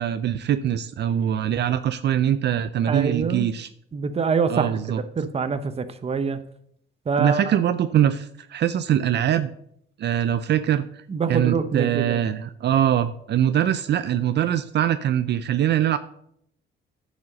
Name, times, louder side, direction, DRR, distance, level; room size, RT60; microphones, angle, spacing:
voice 1, 0.0-3.7 4.5-5.0 7.2-9.5 10.0-11.0 11.3-16.0, right 10 dB, 60° right, 12 dB, 0.5 m, -23 dB
voice 2, 2.9-3.5 3.9-4.7 5.2-6.4 7.1-7.5 11.1-12.2, right 5 dB, 30° right, 10 dB, 0.8 m, -25 dB
9.5 x 5.0 x 6.4 m, 0.69 s
cardioid pair, 90°, 20 cm